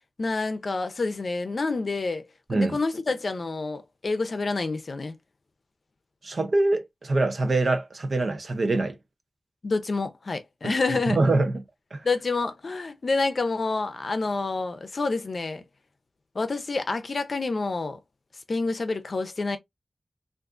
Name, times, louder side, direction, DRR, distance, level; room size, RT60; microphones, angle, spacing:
voice 1, 0.2-5.1 9.6-11.2 12.0-15.6 16.3-18.0 18.5-19.6, left 3 dB, 60° left, 0.5 m, -28 dB
voice 2, 6.2-9.0 11.1-11.6 11.9-12.1, right 2 dB, 60° right, 0.6 m, -24 dB
3.6 x 2.5 x 2.4 m
wide cardioid pair, 85°, 0 cm